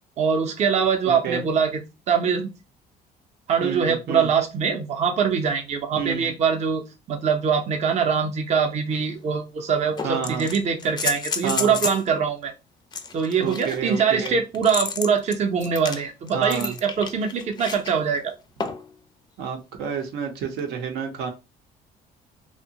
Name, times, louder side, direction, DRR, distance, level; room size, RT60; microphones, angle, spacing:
voice 1, 0.2-1.8 2.1-2.5 3.5-6.8 7.1-12.5 13.1-18.3, right 6 dB, 40° right, 4 dB, 0.5 m, -23 dB
voice 2, 1.1-1.4 3.6-4.3 6.0-6.3 10.0-10.5 11.4-11.8 13.4-14.4 16.3-16.7 19.4-21.3, right 7 dB, 85° right, 3 dB, 0.6 m, -29 dB
sound 1, 8.9-9.0 10.0-12.1 12.9-17.9 18.6-18.9 20.6-20.7, left 5 dB, 25° left, 0.4 m, -31 dB
2.7 x 2.1 x 2.7 m, 0.27 s
cardioid pair, 110°, 17 cm